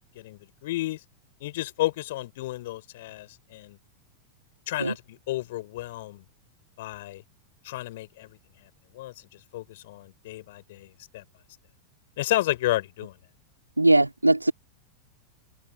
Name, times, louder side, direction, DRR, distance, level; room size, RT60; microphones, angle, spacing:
voice 1, 0.1-1.0 1.4-3.8 4.7-6.2 6.8-7.2 7.6-8.4 8.9-11.2 12.2-13.2, left 16 dB, 55° left, 6.1 m, -32 dB
voice 2, 13.8-14.5, right 2 dB, 85° right, 3.8 m, -20 dB
figure-of-eight pair, 90°, 0 cm